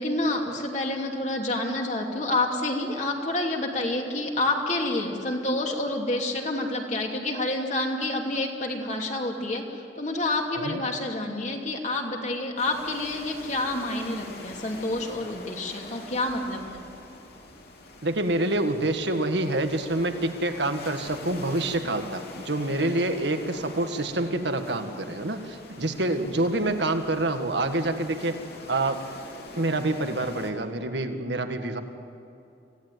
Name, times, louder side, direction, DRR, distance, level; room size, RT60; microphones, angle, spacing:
voice 1, 0.0-9.6 9.9-16.8, left 2 dB, 40° left, 1 dB, 2.7 m, -28 dB
sound 1, 12.6-30.5, left 2 dB, 60° left, 3.1 m, -44 dB
voice 2, 18.0-28.4 28.7-29.0 29.6-31.8, right 2 dB, 75° right, 7 dB, 1.7 m, -27 dB
25.5 x 16.5 x 9.3 m, 2.7 s
head